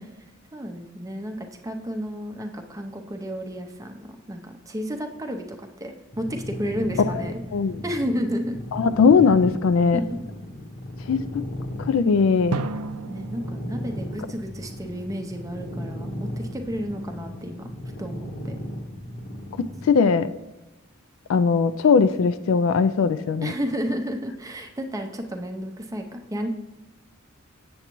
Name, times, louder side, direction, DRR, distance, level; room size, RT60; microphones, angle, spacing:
voice 1, 0.5-7.4 7.8-8.6 9.9-10.2 11.1-11.2 13.1-17.7 18.0-18.6 23.4-26.5, equal, 15° right, 5 dB, 0.5 m, -32 dB
sound 1, 6.1-19.9, left 1 dB, 40° left, 0.8 m, -36 dB
voice 2, 7.5-7.8 8.7-10.0 11.1-11.4 11.8-12.6 19.8-20.3 21.3-23.5, left 5 dB, 65° left, 12 dB, 0.3 m, -19 dB
Drum, 12.5-15.2, right 4 dB, 85° right, 0.4 m, -35 dB
7.8 x 7.1 x 3.0 m, 1.0 s
head